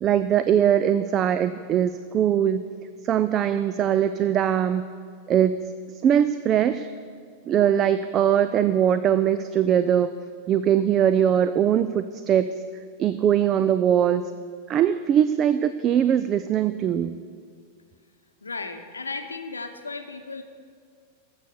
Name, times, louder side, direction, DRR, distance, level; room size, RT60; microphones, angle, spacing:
voice 1, 0.0-2.6 3.0-4.8 5.3-5.5 6.0-6.9 7.5-10.1 10.5-12.5 13.0-14.2 14.7-17.2, right 9 dB, 30° right, 12 dB, 0.4 m, -21 dB
voice 2, 18.4-20.4, left 3 dB, 75° left, 7 dB, 0.8 m, -35 dB
14.0 x 6.6 x 6.9 m, 2.1 s
figure-of-eight pair, 90°, 0 cm